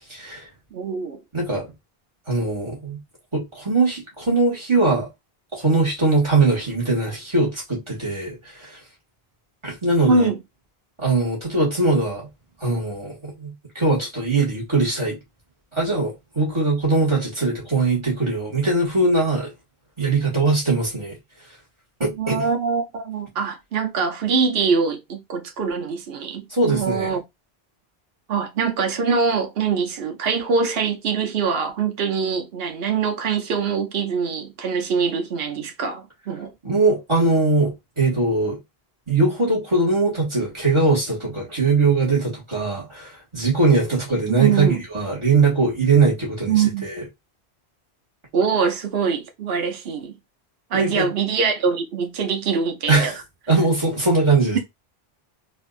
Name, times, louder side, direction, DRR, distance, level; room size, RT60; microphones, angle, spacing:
voice 1, 0.1-0.5 1.3-1.7 2.3-3.0 3.3-5.1 5.5-8.8 9.6-10.3 11.0-12.3 12.6-15.2 15.7-19.5 20.0-21.2 22.0-22.4 26.5-27.2 36.6-38.6 39.1-47.0 50.7-51.1 52.9-53.2 53.5-54.6, right 3 dB, 30° right, 1.9 m, -21 dB
voice 2, 0.7-1.2 10.1-10.4 22.2-27.2 28.3-36.5 44.3-44.8 46.5-46.9 48.3-50.1 50.7-53.1, right 5 dB, 70° right, 1.0 m, -23 dB
4.1 x 2.6 x 2.5 m
omnidirectional pair, 1.0 m